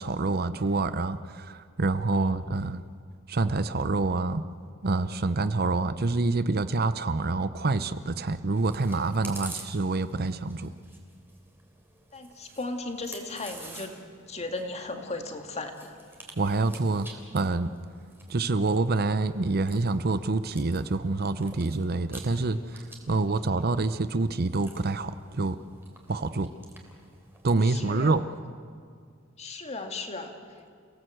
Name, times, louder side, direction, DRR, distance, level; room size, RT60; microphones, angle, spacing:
voice 1, 0.0-2.8 3.3-4.4 4.8-10.7 16.4-17.1 17.3-17.7 18.3-25.6 26.1-26.5 27.4-28.2, right 3 dB, 50° right, 13 dB, 0.7 m, -27 dB
Chewing mastication, 8.5-28.1, right 2 dB, 10° right, 3.4 m, -49 dB
voice 2, 12.1-13.9 14.3-16.0 22.5-22.8 23.1-23.4 27.6-28.2 29.4-30.4, left 2 dB, 35° left, 5 dB, 2.2 m, -36 dB
29.5 x 17.5 x 7.8 m, 2.1 s
head